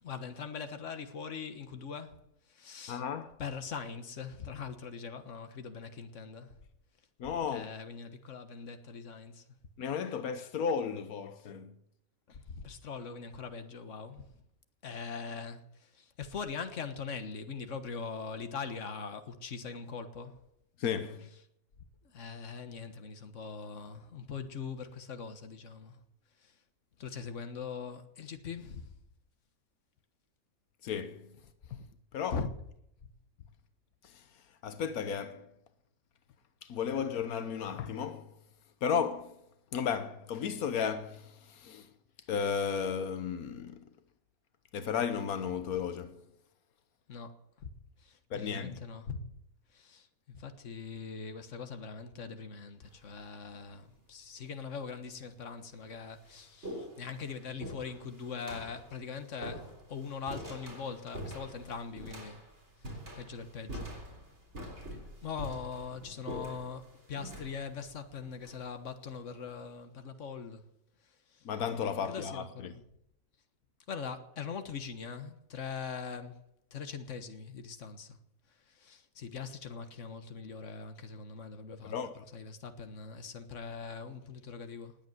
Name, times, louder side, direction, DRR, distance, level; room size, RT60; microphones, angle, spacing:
voice 1, 0.0-3.0 3.4-6.6 7.5-9.5 12.3-14.3 14.8-20.4 22.0-26.0 26.4-26.6 27.0-28.9 32.3-32.5 47.1-47.7 48.0-49.2 49.7-62.4 62.8-64.0 65.2-70.7 71.0-71.5 72.1-72.8 73.9-76.4 76.7-78.2 78.5-84.9, left 5 dB, 60° left, 1.7 m, -42 dB
voice 2, 2.9-3.3 7.2-7.7 9.8-11.8 20.8-21.3 30.8-31.4 31.7-31.9 32.1-32.4 34.0-35.5 36.6-38.4 38.8-39.4 39.7-41.9 42.3-43.9 44.7-46.3 48.3-48.8 71.4-72.7 81.8-82.1, left 7 dB, 85° left, 1.4 m, -34 dB
sound 1, 52.8-53.3 54.2-54.3 55.2-55.3 55.6-69.2, equal, 50° right, 4.1 m, -45 dB
19.5 x 8.4 x 7.9 m
omnidirectional pair, 1.5 m